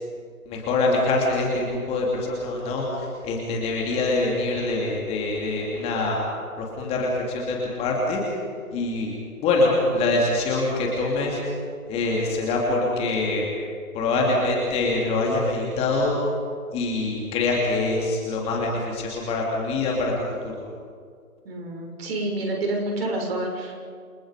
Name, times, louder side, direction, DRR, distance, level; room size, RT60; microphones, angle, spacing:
voice 1, 0.5-6.2 6.6-8.2 8.7-9.1 9.4-11.4 11.9-13.4 13.9-16.1 16.7-20.1 20.4-20.5, left 2 dB, 15° left, -2 dB, 3.0 m, -24 dB
voice 2, 21.4-23.9, right 2 dB, 40° right, 0 dB, 6.5 m, -28 dB
29.0 x 26.0 x 5.1 m, 2.1 s
figure-of-eight pair, 150°, 44 cm